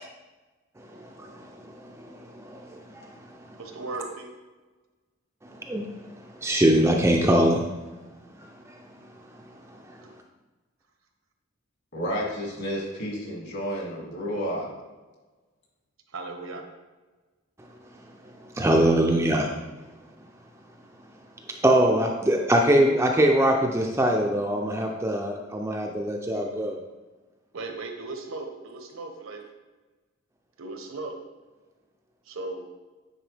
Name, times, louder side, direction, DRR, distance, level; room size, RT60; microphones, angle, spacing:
voice 1, 0.9-3.2 3.5-3.6 5.6-5.9 6.3-7.7 9.7-9.8 18.5-19.5 21.5-26.8, right 1 dB, 15° right, 1 dB, 0.4 m, -23 dB
voice 2, 3.6-4.3 16.1-16.6 27.5-29.5 30.6-31.2 32.2-32.7, right 3 dB, 75° right, 4 dB, 1.0 m, -36 dB
voice 3, 11.9-14.7, equal, 55° left, -3 dB, 2.1 m, -31 dB
9.0 x 4.3 x 3.3 m, 1.2 s
head